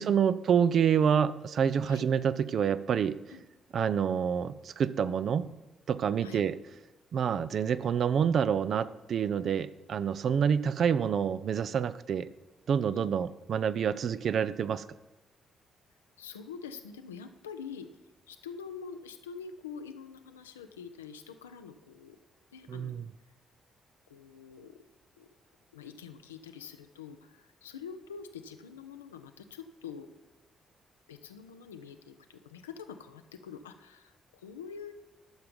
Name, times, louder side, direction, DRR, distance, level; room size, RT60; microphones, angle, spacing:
voice 1, 0.0-3.2 3.7-5.5 5.9-6.5 7.1-12.3 12.7-14.8 22.7-23.1, right 7 dB, 50° right, 15 dB, 0.4 m, -27 dB
voice 2, 16.2-17.9 18.3-22.2 22.5-23.1 24.1-24.8 25.2-25.3 25.7-30.1 31.1-34.9, left 6 dB, 80° left, 8 dB, 0.5 m, -45 dB
12.0 x 6.9 x 5.2 m, 1.1 s
figure-of-eight pair, 40°, 0 cm